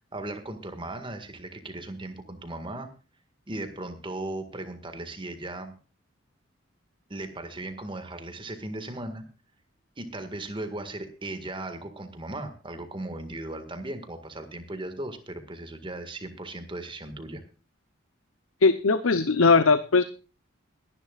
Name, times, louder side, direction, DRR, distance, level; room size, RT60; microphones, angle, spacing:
voice 1, 0.1-2.9 3.5-5.7 7.1-9.2 10.0-17.4, right 2 dB, 25° right, 8 dB, 1.9 m, -37 dB
voice 2, 18.6-20.0, left 4 dB, 85° left, 12 dB, 0.8 m, -20 dB
22.0 x 11.0 x 2.4 m, 0.35 s
head